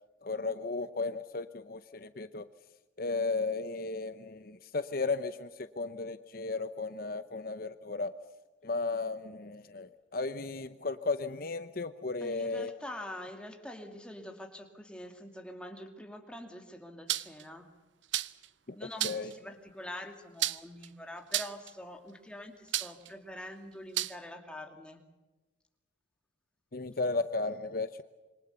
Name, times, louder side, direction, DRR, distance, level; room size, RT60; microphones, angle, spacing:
voice 1, 0.2-2.5 3.0-8.1 8.6-12.7 19.0-19.3 26.7-28.0, left 3 dB, 50° left, 11 dB, 0.8 m, -34 dB
voice 2, 12.2-17.7 18.7-25.0, left 1 dB, 5° left, 4 dB, 2.3 m, -45 dB
sound 1, 17.1-17.4 18.1-18.5 19.0-19.3 20.4-20.9 21.3-21.7 22.7-23.1 24.0-24.2, right 14 dB, 75° right, 0.7 m, -32 dB
27.0 x 24.0 x 7.0 m, 1.2 s
head